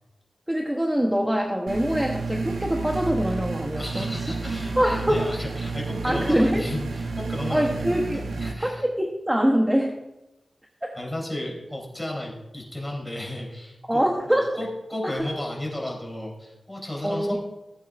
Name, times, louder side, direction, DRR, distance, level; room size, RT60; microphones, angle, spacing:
voice 1, 0.5-4.1 4.8-5.3 6.0-6.6 7.5-8.2 8.6-8.7 9.0-10.0 13.9-14.5 15.0-15.3 17.0-17.4, equal, 10° right, 1 dB, 1.0 m, -24 dB
sound 1, 1.7-8.5, right 4 dB, 90° right, 0.9 m, -31 dB
voice 2, 3.8-7.8 8.1-8.8 10.9-17.4, left 1 dB, 10° left, -2 dB, 3.9 m, -34 dB
15.5 x 8.6 x 2.6 m, 0.96 s
wide cardioid pair, 70°, 0 cm